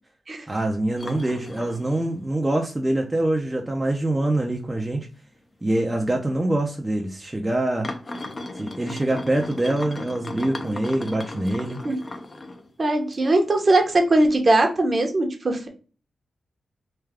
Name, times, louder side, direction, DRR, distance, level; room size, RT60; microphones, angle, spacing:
voice 1, 0.5-5.1 5.6-7.9 8.5-11.8, right 1 dB, 20° right, 0.6 m, -24 dB
sound 1, 1.0-2.4 2.8-2.9 3.6-3.7 4.2-4.4 4.7-4.8 5.8-5.9 6.6-6.7 7.8-12.7 13.1-13.8 14.3-14.4, left 2 dB, 35° left, 0.6 m, -36 dB
voice 2, 12.8-15.7, right 2 dB, 40° right, 0.9 m, -20 dB
3.3 x 2.3 x 3.5 m
cardioid pair, 80°, 0 cm